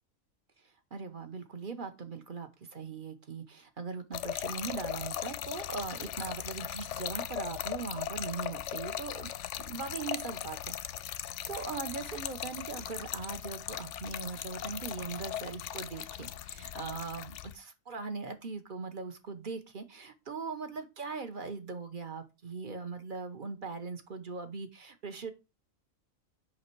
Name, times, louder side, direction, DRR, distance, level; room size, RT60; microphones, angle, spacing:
voice 1, 0.9-9.3 9.6-25.3, right 4 dB, 40° right, 8 dB, 1.0 m, -40 dB
Trickle dribble / Fill (with liquid), 4.1-17.6, left 11 dB, 70° left, 0.8 m, -39 dB
5.8 x 5.6 x 4.6 m, 0.27 s
omnidirectional pair, 1.4 m